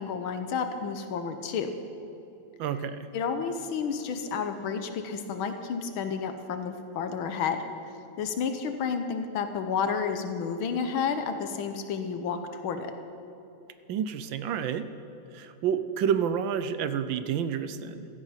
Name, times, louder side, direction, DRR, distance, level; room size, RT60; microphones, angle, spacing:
voice 1, 0.0-1.7 3.1-7.7 8.2-12.9, left 6 dB, 85° left, 7 dB, 1.7 m, -31 dB
voice 2, 2.6-3.1 13.9-14.9 15.3-18.1, right 8 dB, 75° right, 11 dB, 1.4 m, -29 dB
16.0 x 13.0 x 5.7 m, 2.9 s
omnidirectional pair, 2.2 m